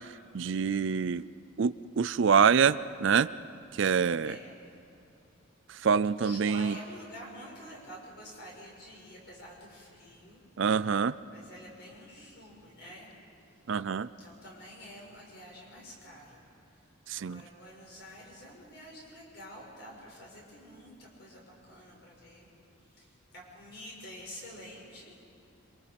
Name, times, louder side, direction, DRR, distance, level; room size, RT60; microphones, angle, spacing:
voice 1, 0.0-1.3 1.6-3.3 3.7-4.4 5.7-6.8 10.6-11.2 13.7-14.1 17.1-17.4, right 6 dB, 60° right, 16 dB, 0.4 m, -26 dB
voice 2, 4.2-4.5 6.1-10.4 11.3-13.1 14.0-16.4 16.7-16.8 17.1-22.5 22.9-25.2, equal, 50° left, -2 dB, 6.0 m, -48 dB
27.0 x 24.5 x 5.3 m, 2.7 s
head